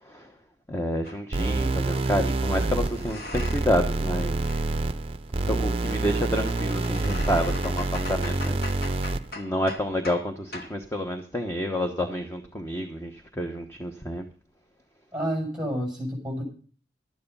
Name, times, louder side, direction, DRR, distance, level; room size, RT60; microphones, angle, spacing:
voice 1, 0.7-4.4 5.5-8.6 9.3-14.2, equal, 15° left, 4 dB, 1.0 m, -29 dB
sound 1, 1.0-1.2 2.3-3.9 4.1-10.3 10.5-10.8, left 2 dB, 55° left, 1.9 m, -41 dB
sound 2, 1.3-9.3, right 2 dB, 30° right, 0.6 m, -27 dB
voice 2, 15.1-16.4, equal, 5° right, 1 dB, 6.2 m, -29 dB
12.5 x 9.6 x 5.4 m, 0.41 s
head